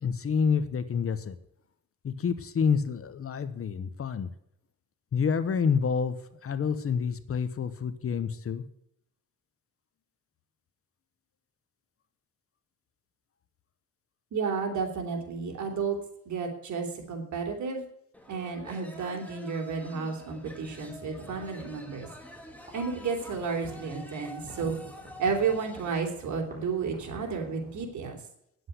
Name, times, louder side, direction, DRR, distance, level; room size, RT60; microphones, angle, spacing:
voice 1, 0.0-1.3 2.0-4.3 5.1-6.2 6.4-8.6, left 6 dB, 45° left, 13 dB, 0.9 m, -28 dB
voice 2, 14.3-16.0 16.2-17.8 18.3-22.1 22.7-24.8 25.2-28.2, right 5 dB, 60° right, 3 dB, 3.3 m, -32 dB
sound 1, 18.1-26.0, left 1 dB, 5° left, 2.4 m, -47 dB
sound 2, 20.3-27.8, right 1 dB, 25° right, 4.3 m, -49 dB
9.6 x 8.0 x 8.2 m, 0.75 s
cardioid pair, 95°, 32 cm